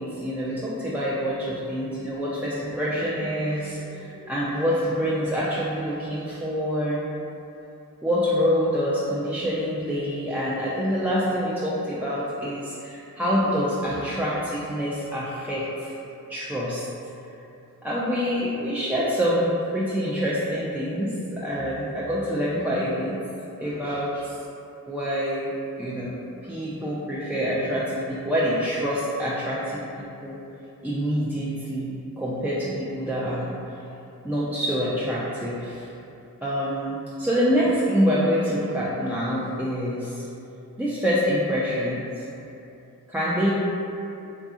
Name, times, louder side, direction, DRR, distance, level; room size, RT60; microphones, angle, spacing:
voice 1, 0.0-7.0 8.0-15.9 16.3-16.9 17.8-23.2 23.6-24.3 24.9-25.5 25.8-26.2 26.5-30.4 30.8-33.5 34.2-35.9 36.4-40.3 40.8-42.0 43.1-43.5, equal, 5° right, -8 dB, 0.3 m, -26 dB
2.6 x 2.4 x 2.4 m, 2.7 s
cardioid pair, 45°, 36 cm